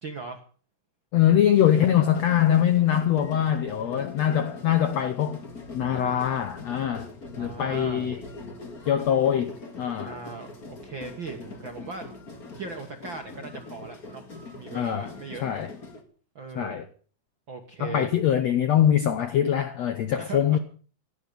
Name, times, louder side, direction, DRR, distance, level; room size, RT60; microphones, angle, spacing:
voice 1, 0.0-0.4 3.5-4.0 7.3-8.1 10.0-12.1 12.5-14.2 14.6-15.4 16.3-16.9 17.5-18.1 20.2-20.6, right 4 dB, 55° right, 1.3 m, -39 dB
voice 2, 1.1-5.4 5.7-8.2 8.9-10.1 14.7-15.1 15.4-15.7 16.5-16.9 17.8-20.6, left 10 dB, 75° left, 1.5 m, -23 dB
sound 1, 1.5-16.0, left 3 dB, 30° left, 2.1 m, -42 dB
16.5 x 12.0 x 6.8 m
omnidirectional pair, 4.2 m